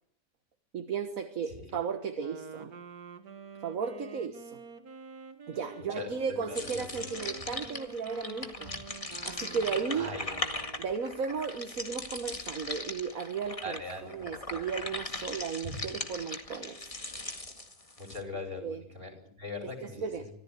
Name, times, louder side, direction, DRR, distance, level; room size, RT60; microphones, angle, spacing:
voice 1, 0.7-2.7 3.6-4.6 5.5-8.7 9.2-10.1 10.8-13.8 14.1-16.9 18.6-18.8 20.0-20.3, right 6 dB, 65° right, 7 dB, 1.8 m, -35 dB
voice 2, 1.5-1.8 5.9-7.3 8.6-8.8 9.9-10.3 13.6-14.2 15.6-15.8 18.0-20.3, left 2 dB, 40° right, 6 dB, 5.9 m, -41 dB
Wind instrument woodwind instrument, 2.1-11.0, right 4 dB, 90° right, 2.4 m, -47 dB
sound 1, 6.5-18.2, left 2 dB, 25° left, 2.0 m, -39 dB
25.5 x 15.0 x 9.5 m, 0.68 s
omnidirectional pair, 1.6 m